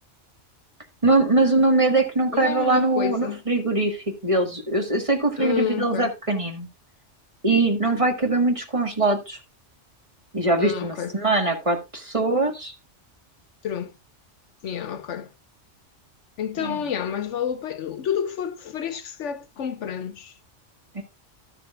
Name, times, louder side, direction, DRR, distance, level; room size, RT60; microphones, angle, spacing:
voice 1, 1.0-6.7 7.4-9.4 10.3-12.7 16.6-16.8 20.9-21.0, right 2 dB, 25° right, 1.7 m, -22 dB
voice 2, 2.3-3.4 5.4-6.1 10.6-11.1 13.6-13.9 14.6-15.3 16.4-20.3, left 8 dB, 75° left, 1.1 m, -29 dB
13.0 x 6.7 x 2.5 m
omnidirectional pair, 1.3 m